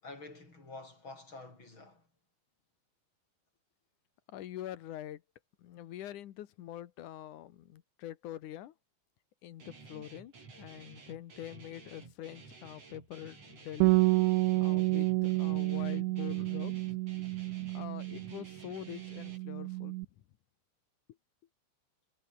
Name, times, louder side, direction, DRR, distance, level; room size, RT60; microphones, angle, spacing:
voice 1, 0.0-2.0, left 3 dB, 25° left, 8.6 m, -48 dB
voice 2, 4.3-5.2 5.6-8.7 9.4-14.0 14.6-16.8 17.7-20.0, left 12 dB, 85° left, 1.7 m, -45 dB
Guitar, 9.6-19.4, right 4 dB, 30° right, 5.6 m, -53 dB
Bass guitar, 13.8-18.5 18.8-20.1, right 22 dB, 85° right, 2.8 m, -30 dB
omnidirectional pair, 5.6 m